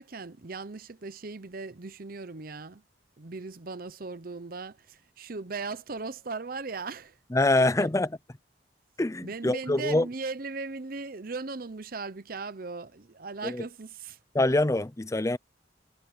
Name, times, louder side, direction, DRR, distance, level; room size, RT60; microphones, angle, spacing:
voice 1, 0.0-2.8 3.2-7.2 7.6-7.9 9.2-14.2, right 4 dB, 55° right, 0.8 m, -38 dB
voice 2, 7.3-8.1 9.0-10.1 13.4-13.6 14.3-15.4, left 2 dB, 15° left, 0.5 m, -25 dB
head